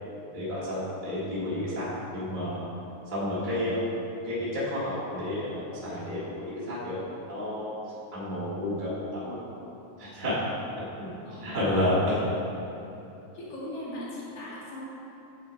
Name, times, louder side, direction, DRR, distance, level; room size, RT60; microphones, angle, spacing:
voice 1, 0.3-2.6 3.1-3.9 4.2-7.0 7.3-7.7 8.1-9.4 10.0-10.4 10.8-11.1 11.4-12.2, left 1 dB, 20° right, -10 dB, 1.7 m, -30 dB
voice 2, 13.3-14.8, left 1 dB, 55° left, -6 dB, 2.9 m, -38 dB
9.5 x 8.0 x 4.0 m, 3.0 s
omnidirectional pair, 3.6 m